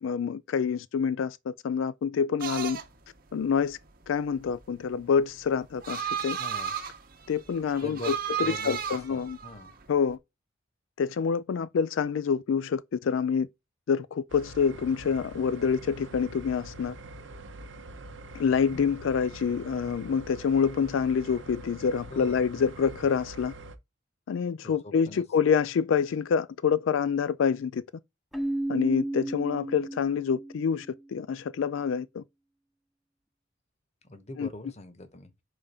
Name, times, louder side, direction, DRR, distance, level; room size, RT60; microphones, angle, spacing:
voice 1, 0.0-2.8 3.3-3.8 4.1-6.4 7.3-9.4 9.9-10.2 11.0-13.5 13.9-17.0 18.3-23.5 24.3-27.8 28.7-32.2 34.4-34.5, left 6 dB, 85° left, 0.4 m, -27 dB
sound 1, 2.4-10.1, right 8 dB, 50° right, 1.0 m, -35 dB
voice 2, 6.4-6.7 7.8-8.1 8.4-9.7 18.7-18.9 22.1-22.4 24.6-25.2 34.1-35.3, left 1 dB, 35° left, 1.0 m, -41 dB
sound 2, 14.3-23.8, right 2 dB, 70° right, 0.8 m, -45 dB
Keyboard (musical), 28.3-31.0, right 1 dB, ahead, 0.7 m, -33 dB
5.1 x 3.5 x 5.4 m
head